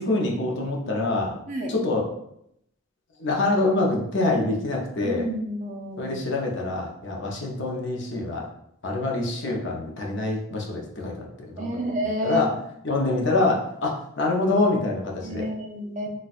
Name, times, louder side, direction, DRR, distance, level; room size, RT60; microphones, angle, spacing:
voice 1, 0.0-1.3 1.7-2.1 3.2-5.2 6.0-8.5 8.8-11.7 12.2-12.5 12.8-15.4, left 2 dB, 60° left, -1 dB, 0.6 m, -25 dB
voice 2, 5.0-6.3 11.6-12.5 15.2-16.1, right 1 dB, 35° right, 1 dB, 0.5 m, -30 dB
4.1 x 2.3 x 2.4 m, 0.76 s
head